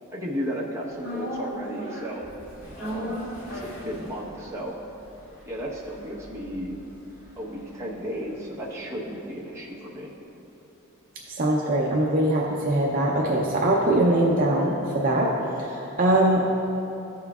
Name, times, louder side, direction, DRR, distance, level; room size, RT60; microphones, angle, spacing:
voice 1, 0.1-2.3 2.7-4.8 5.5-6.8 7.4-10.1, equal, 15° right, -6 dB, 1.0 m, -34 dB
sound 1, 1.0-9.3 9.6-9.7, equal, 65° left, 1.7 m, -38 dB
voice 2, 11.3-15.3 15.6-16.4, right 1 dB, 40° right, -3 dB, 0.6 m, -22 dB
14.0 x 5.7 x 2.4 m, 2.9 s
head